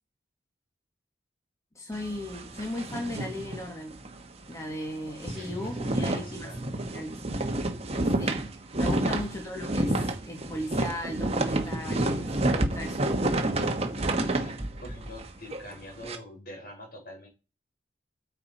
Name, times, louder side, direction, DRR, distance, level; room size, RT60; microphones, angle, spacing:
voice 1, 1.7-4.0 4.5-6.5 6.9-7.2 8.2-8.4 8.8-13.1, left 1 dB, 15° left, 2 dB, 1.6 m, -36 dB
sound 1, 1.9-4.2 4.5-4.7 5.0-16.2, right 1 dB, 35° right, 1.2 m, -29 dB
voice 2, 5.2-6.6 8.9-9.2 13.6-14.5 14.8-17.3, left 1 dB, 55° left, 0 dB, 4.7 m, -45 dB
sound 2, 5.3-7.4, right 1 dB, 5° right, 3.5 m, -43 dB
9.1 x 5.7 x 4.2 m, 0.29 s
head